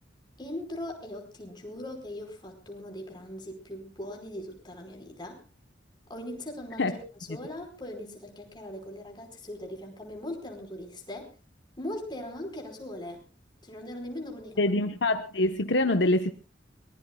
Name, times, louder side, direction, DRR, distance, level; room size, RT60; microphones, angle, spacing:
voice 1, 0.4-5.4 6.1-7.0 7.3-11.3 11.8-13.2 13.6-14.8, left 1 dB, 25° left, 5.1 m, -40 dB
voice 2, 14.6-16.3, left 2 dB, 70° left, 1.1 m, -25 dB
24.0 x 21.0 x 2.4 m
head